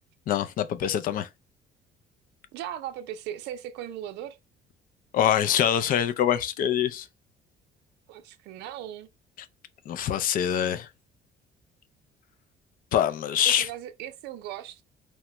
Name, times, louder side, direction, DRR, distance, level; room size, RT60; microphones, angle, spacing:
voice 1, 0.3-1.3 5.1-7.1 9.9-10.9 12.9-13.7, left 9 dB, 55° left, 0.4 m, -24 dB
voice 2, 2.5-4.4 8.1-9.1 13.5-14.8, right 11 dB, 85° right, 0.4 m, -38 dB
2.9 x 2.0 x 3.2 m
cardioid pair, 110°, 17 cm